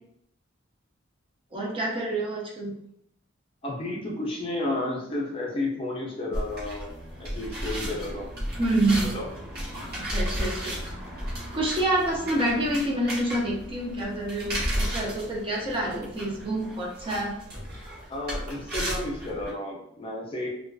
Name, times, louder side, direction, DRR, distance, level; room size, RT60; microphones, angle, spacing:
voice 1, 1.5-2.7 8.6-9.0 10.0-10.8 11.5-17.3, right 1 dB, 25° right, -3 dB, 0.5 m, -27 dB
voice 2, 3.6-6.9 7.2-8.3 8.9-9.3 18.1-20.5, left 2 dB, 30° left, -3 dB, 0.5 m, -32 dB
sound 1, 6.3-19.5, equal, 55° right, 0.9 m, -34 dB
2.4 x 2.3 x 2.3 m, 0.76 s
head